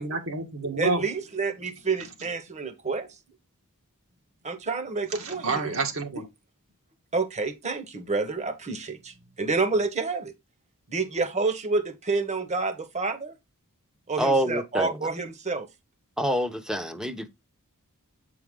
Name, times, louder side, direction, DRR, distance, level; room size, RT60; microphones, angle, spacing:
voice 1, 0.0-1.0 5.2-6.3, right 3 dB, 65° right, 1.8 m, -29 dB
voice 2, 0.8-3.1 4.4-5.7 7.1-10.3 10.9-13.3 14.1-15.7, right 4 dB, 30° right, 1.2 m, -29 dB
voice 3, 14.2-15.1 16.2-17.3, right 1 dB, 5° right, 0.8 m, -26 dB
8.2 x 4.8 x 3.7 m
head